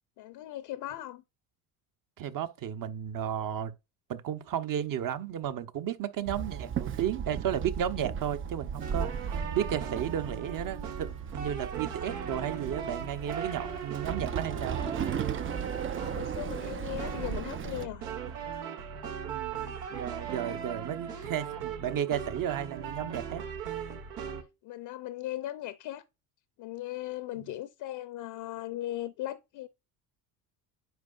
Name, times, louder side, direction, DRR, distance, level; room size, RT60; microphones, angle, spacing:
voice 1, 0.2-1.2 15.9-18.1 20.0-20.1 21.1-21.3 24.6-26.0 26.6-29.7, left 14 dB, 55° left, 0.8 m, -38 dB
voice 2, 2.2-3.7 4.1-14.8 19.3-19.6 19.9-23.4 27.4-27.5, right 9 dB, 45° right, 1.0 m, -33 dB
Walk footsteps / Chatter / Hiss, 6.3-17.9, right 7 dB, 30° right, 0.5 m, -36 dB
sound 1, 8.8-24.4, right 7 dB, 85° right, 1.6 m, -38 dB
9.4 x 5.0 x 2.5 m
supercardioid pair, 85°, 46 cm